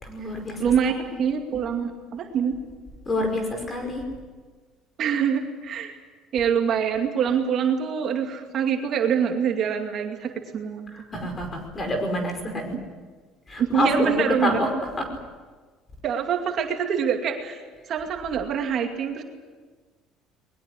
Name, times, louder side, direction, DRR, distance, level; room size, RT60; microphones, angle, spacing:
voice 1, 0.0-0.7 3.1-4.0 10.9-12.8 13.5-14.7, left 1 dB, 20° left, 5 dB, 5.2 m, -27 dB
voice 2, 0.6-0.9 1.2-2.6 5.0-6.0 6.3-10.9 12.7-12.8 13.6-14.6 16.0-19.2, right 7 dB, 45° right, 3 dB, 2.4 m, -25 dB
21.0 x 20.5 x 9.9 m, 1.4 s
cardioid pair, 145°, 0 cm